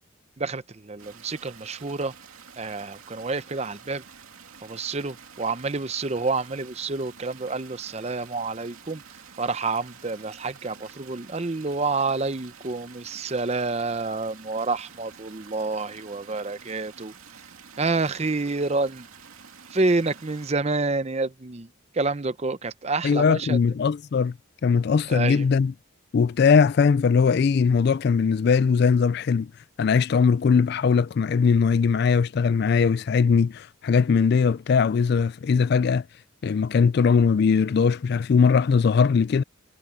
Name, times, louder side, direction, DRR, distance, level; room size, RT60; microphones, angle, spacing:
voice 1, 0.4-2.1 2.6-4.0 4.6-9.0 9.4-17.1 17.8-19.1 19.7-21.7 21.9-23.6 25.1-25.5, right 3 dB, 30° right, 0.7 m, -28 dB
sound 1, 1.0-20.5, right 6 dB, 90° right, 2.7 m, -48 dB
voice 2, 23.0-24.3 24.6-25.7 26.1-29.5 29.8-36.0 36.4-39.4, left 5 dB, 50° left, 0.3 m, -20 dB
head